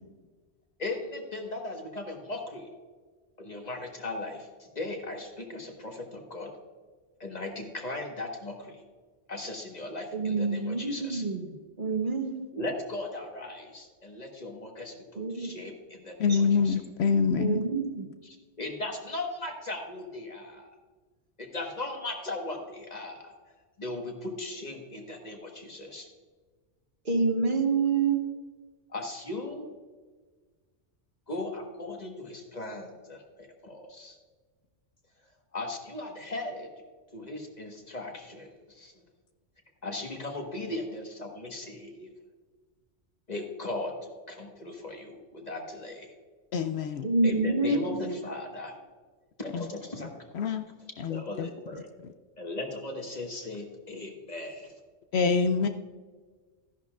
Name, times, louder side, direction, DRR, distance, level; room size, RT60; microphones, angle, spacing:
voice 1, 0.8-2.7 3.4-6.5 7.2-8.8 9.3-11.2 12.5-16.3 16.6-16.8 18.2-20.7 21.4-23.3 23.8-26.1 28.9-29.7 31.3-34.2 35.5-36.7 37.1-38.9 39.8-42.1 43.3-46.1 47.2-48.7 49.4-50.2 51.1-51.9 52.4-54.7, left 2 dB, 35° left, 2 dB, 1.5 m, -38 dB
voice 2, 10.1-11.5 11.8-12.5 15.1-15.5 16.3-16.5 17.4-18.1 27.0-28.2 47.0-47.8 48.0-48.1, right 3 dB, 45° right, 3 dB, 1.2 m, -27 dB
voice 3, 16.2-17.6 46.5-47.1 49.5-49.7 50.0-50.1 50.3-50.6 51.0-51.5 55.1-55.7, left 5 dB, 70° left, 7 dB, 0.8 m, -26 dB
13.5 x 11.0 x 2.4 m, 1.4 s
omnidirectional pair, 1.2 m